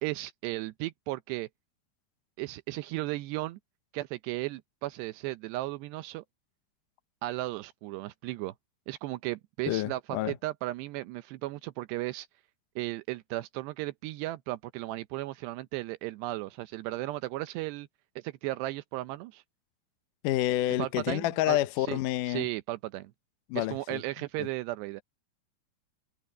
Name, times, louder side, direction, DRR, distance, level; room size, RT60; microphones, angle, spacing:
voice 1, 0.0-1.5 2.4-3.6 3.9-6.2 7.2-8.5 8.9-12.3 12.8-17.9 18.2-19.4 20.8-22.0 22.3-23.1 23.5-25.0, right 18 dB, 80° right, 2.7 m, -35 dB
voice 2, 9.7-10.4 20.2-22.5 23.5-24.0 24.4-24.5, left 15 dB, 85° left, 1.8 m, -29 dB
omnidirectional pair, 5.0 m